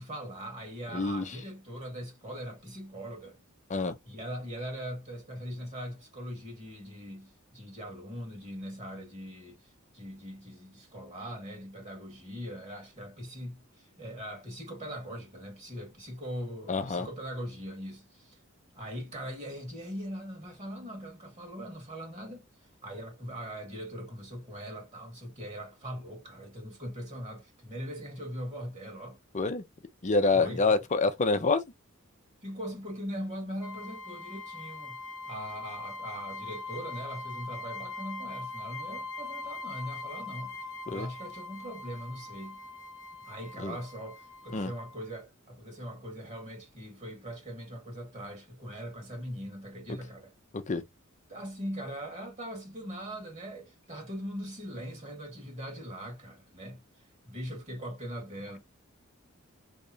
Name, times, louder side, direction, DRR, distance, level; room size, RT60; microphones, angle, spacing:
voice 1, 0.0-3.4 4.0-18.4 18.7-22.4 22.8-29.2 30.2-30.8 32.4-35.0 35.3-40.6 40.8-42.6 43.2-50.3 51.3-56.8 57.2-58.6, equal, 35° right, 1.6 m, -41 dB
voice 2, 0.9-1.2 3.7-4.0 16.7-17.1 29.3-29.6 30.0-31.6 40.9-41.1 43.6-43.8 44.5-44.7 50.5-50.8, left 3 dB, 35° left, 0.6 m, -27 dB
sound 1, 33.6-45.0, left 3 dB, 20° left, 1.0 m, -42 dB
3.4 x 2.9 x 2.6 m
head